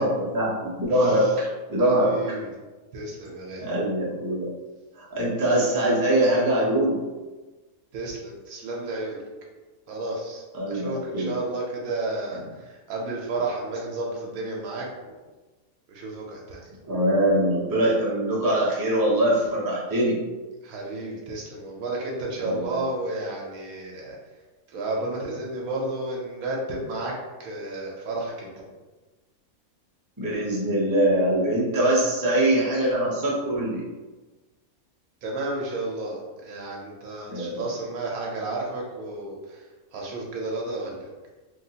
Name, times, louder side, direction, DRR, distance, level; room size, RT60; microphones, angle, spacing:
voice 1, 0.0-2.2 3.6-4.5 5.0-7.0 10.5-11.3 16.9-20.2 22.4-22.8 30.2-33.8 37.3-37.6, right 1 dB, 30° right, -7 dB, 0.3 m, -23 dB
voice 2, 0.9-1.3 1.8-2.5 2.9-3.7 7.9-9.2 9.9-15.2 15.9-16.6 20.6-24.2 24.7-27.1 27.4-28.5 35.2-39.6 39.9-41.1, right 2 dB, 80° right, -2 dB, 1.0 m, -32 dB
3.2 x 2.4 x 2.7 m, 1.2 s
omnidirectional pair, 1.5 m